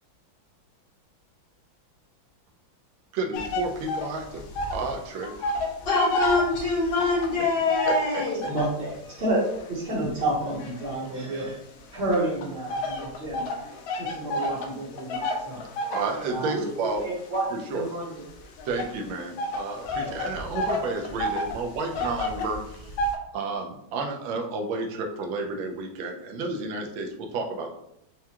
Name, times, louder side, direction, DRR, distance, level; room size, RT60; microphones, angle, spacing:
voice 1, 3.1-4.4 4.7-5.5 7.9-8.2 15.9-17.0 17.5-17.9 18.6-22.9 23.3-27.7, right 3 dB, 80° right, 1.4 m, -31 dB
sound 1, 3.3-4.9 5.2-8.8 9.4-11.5 12.1-23.2, left 1 dB, 80° left, 1.4 m, -31 dB
voice 2, 5.8-8.4, left 3 dB, 55° left, 1.8 m, -24 dB
voice 3, 8.5-11.6 11.9-13.4 14.0-15.6 16.3-16.6 17.0-17.5 17.7-18.1, right 1 dB, 40° right, 0.9 m, -29 dB
4.7 x 2.2 x 2.8 m
omnidirectional pair, 2.2 m